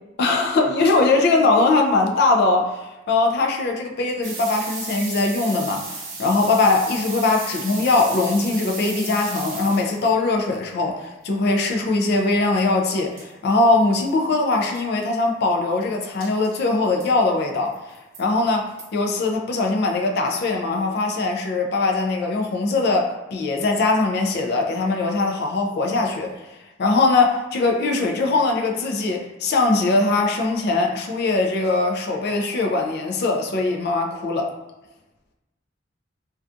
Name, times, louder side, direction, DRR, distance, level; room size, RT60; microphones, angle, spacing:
voice 1, 0.2-17.7 18.2-34.5, left 3 dB, 55° left, 1 dB, 0.3 m, -21 dB
sound 1, 4.2-10.1 12.9-13.0 13.2-13.3 13.8-13.9 14.1-14.2 14.6-14.8 16.2-16.5 17.0-17.1 17.7-18.2 18.8-18.9, right 4 dB, 75° right, 0.7 m, -34 dB
2.5 x 2.3 x 2.3 m, 1.0 s
head